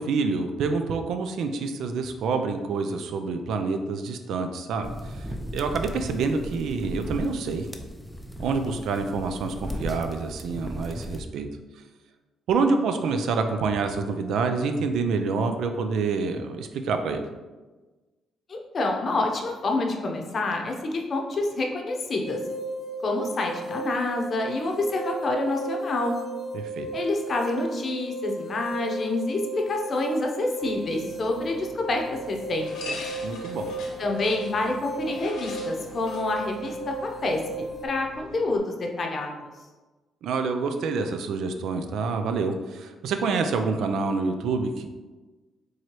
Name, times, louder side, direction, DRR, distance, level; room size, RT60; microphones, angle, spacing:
voice 1, 0.0-5.3 5.5-7.7 8.4-11.5 12.5-17.3 26.5-26.9 33.2-33.7 40.2-44.9, right 4 dB, 75° right, 7 dB, 0.4 m, -27 dB
sound 1, 4.8-11.2, equal, 5° left, 0.4 m, -36 dB
voice 2, 18.5-22.4 23.0-26.1 26.9-32.9 34.0-37.4 37.8-39.3, left 2 dB, 45° left, 2 dB, 0.7 m, -28 dB
sound 2, 22.2-37.9, right 2 dB, 15° right, 0.9 m, -35 dB
sound 3, 30.6-38.6, left 2 dB, 85° left, 1.1 m, -43 dB
4.6 x 3.0 x 3.0 m, 1.2 s
cardioid pair, 90°, 0 cm